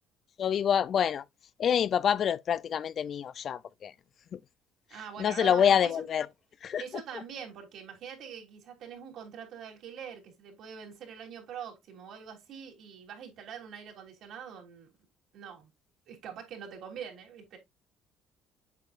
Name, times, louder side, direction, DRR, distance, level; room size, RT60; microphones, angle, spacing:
voice 1, 0.4-1.2 1.6-3.9 4.3-4.4 5.2-6.3 6.6-6.8, left 8 dB, 50° left, 0.4 m, -26 dB
voice 2, 4.9-5.9 6.8-14.9 15.3-15.7 16.1-17.6, right 7 dB, 65° right, 3.2 m, -44 dB
8.3 x 6.4 x 2.4 m
supercardioid pair, 90°, 0 cm